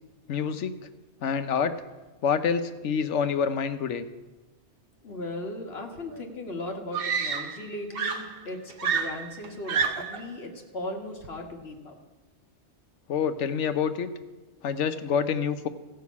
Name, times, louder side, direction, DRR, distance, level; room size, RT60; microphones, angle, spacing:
voice 1, 0.3-0.7 1.2-1.8 2.2-4.1 13.1-14.1 14.6-15.7, left 6 dB, 80° left, 10 dB, 1.1 m, -27 dB
voice 2, 5.0-12.0, left 1 dB, 60° left, 2 dB, 1.8 m, -37 dB
Screaming, 6.1-6.2 6.9-7.7 8.0-10.3 11.2-11.5, right 6 dB, 55° right, 1.0 m, -29 dB
14.5 x 5.7 x 8.3 m, 1.2 s
omnidirectional pair, 1.2 m